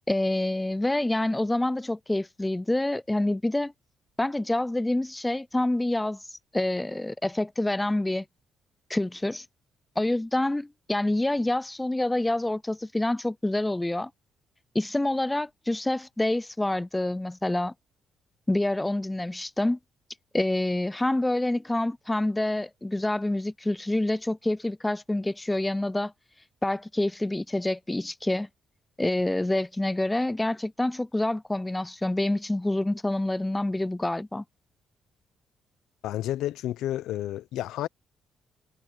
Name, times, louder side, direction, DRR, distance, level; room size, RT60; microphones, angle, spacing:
voice 1, 0.1-3.7 4.2-8.2 8.9-9.5 10.0-14.1 14.7-17.7 18.5-19.8 20.3-26.1 26.6-28.5 29.0-34.4, left 1 dB, 10° left, 0.3 m, -27 dB
voice 2, 36.0-37.9, left 13 dB, 85° left, 0.6 m, -31 dB
cardioid pair, 90°, 0 cm